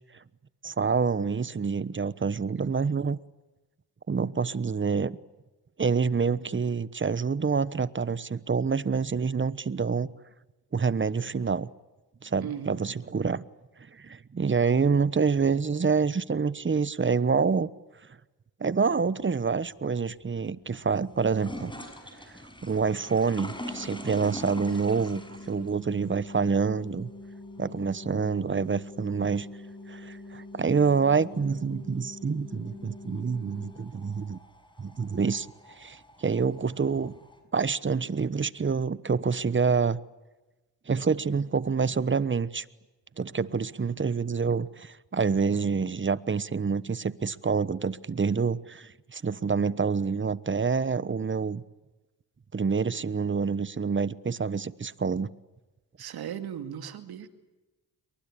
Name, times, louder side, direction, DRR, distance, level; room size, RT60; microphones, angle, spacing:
voice 1, 0.6-3.2 4.1-5.2 5.8-10.1 10.7-11.7 12.2-13.4 13.9-17.7 18.6-21.7 22.6-25.2 25.5-27.1 27.6-29.5 29.9-34.4 34.8-35.5 35.8-37.1 37.5-40.0 40.9-42.6 43.2-51.6 52.5-55.3, right 5 dB, 30° right, 1.1 m, -27 dB
voice 2, 12.4-12.8 56.0-57.3, right 9 dB, 85° right, 2.4 m, -37 dB
sound 1, 19.2-37.4, left 1 dB, 15° left, 6.9 m, -46 dB
sound 2, 23.7-33.7, left 2 dB, 45° left, 4.6 m, -45 dB
28.5 x 23.5 x 8.7 m
cardioid pair, 65°, 36 cm